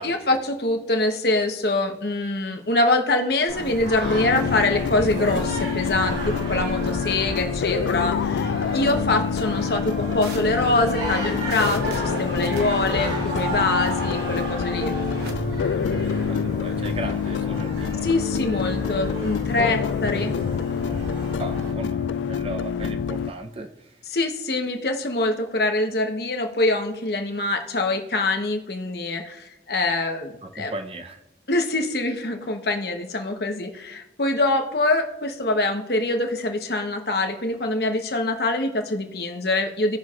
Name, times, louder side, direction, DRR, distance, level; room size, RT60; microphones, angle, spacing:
voice 1, 0.0-15.0 18.0-20.3 24.1-30.7 31.5-40.0, left 2 dB, 60° left, 4 dB, 1.0 m, -24 dB
Singing, 3.5-21.7, right 1 dB, 85° right, 2.8 m, -32 dB
sound 1, 4.0-23.3, left 7 dB, 90° left, 0.3 m, -27 dB
sound 2, 10.2-15.3, right 2 dB, 60° right, 1.2 m, -42 dB
voice 2, 15.6-18.1 19.9-20.3 21.4-24.0 30.4-31.2, right 2 dB, 35° right, 6 dB, 0.6 m, -37 dB
17.5 x 6.1 x 2.4 m, 0.97 s
head